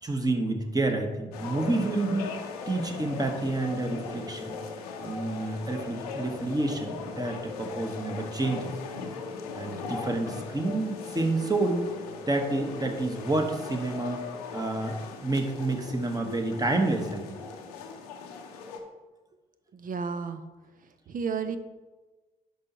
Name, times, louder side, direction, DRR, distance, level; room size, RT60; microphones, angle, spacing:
voice 1, 0.0-4.6 5.0-8.7 9.5-11.9 12.3-14.2 14.5-17.4, right 2 dB, 20° right, 3 dB, 1.4 m, -29 dB
sound 1, 1.3-18.8, left 4 dB, 85° left, 0.7 m, -39 dB
voice 2, 19.7-20.4 21.1-21.6, right 5 dB, 45° right, 10 dB, 0.6 m, -32 dB
10.5 x 5.5 x 3.0 m, 1.2 s
hypercardioid pair, 40°, 19 cm